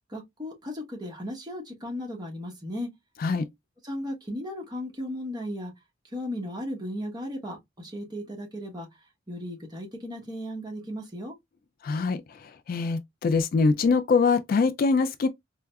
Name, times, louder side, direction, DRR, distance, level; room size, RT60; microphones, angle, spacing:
voice 1, 0.1-2.9 3.8-5.7 6.0-11.3, left 1 dB, 20° right, 1.0 m, -36 dB
voice 2, 11.8-15.3, left 4 dB, 50° left, 0.3 m, -24 dB
4.5 x 2.1 x 2.2 m
head